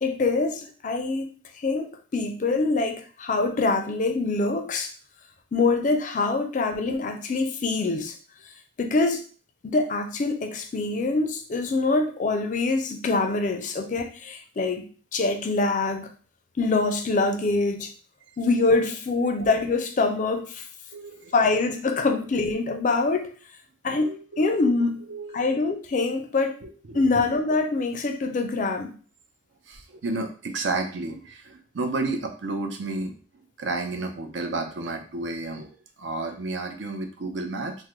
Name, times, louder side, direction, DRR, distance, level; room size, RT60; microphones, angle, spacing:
voice 1, 0.0-1.3 1.6-4.9 5.5-8.2 8.8-9.2 9.6-16.1 16.6-17.9 18.4-20.6 21.3-23.3 23.8-25.0 25.3-26.6 26.9-28.9, left 3 dB, 40° left, 6 dB, 0.4 m, -24 dB
voice 2, 20.9-21.6 21.9-22.1 24.0-24.6 25.0-25.6 26.6-27.0 29.7-33.1 33.6-37.7, right 3 dB, 70° right, 5 dB, 0.5 m, -32 dB
3.6 x 2.0 x 3.0 m, 0.40 s
head